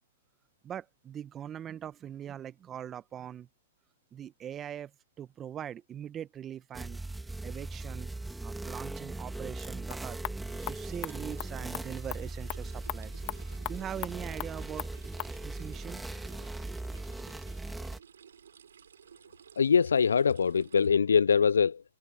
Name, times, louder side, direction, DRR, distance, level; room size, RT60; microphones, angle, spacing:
voice 1, 0.6-3.5 4.1-4.9 5.2-7.0 7.4-8.1 8.4-10.2 10.7-13.2 13.7-14.9 15.4-16.0, right 9 dB, 20° right, 1.1 m, -41 dB
sound 1, 6.7-18.0, right 2 dB, 5° right, 2.7 m, -39 dB
sound 2, 9.6-15.4, left 22 dB, 35° left, 1.9 m, -42 dB
sound 3, 10.5-20.9, right 7 dB, 75° right, 7.8 m, -55 dB
voice 2, 19.6-21.8, left 6 dB, 80° left, 0.3 m, -23 dB
hypercardioid pair, 125°, 0 cm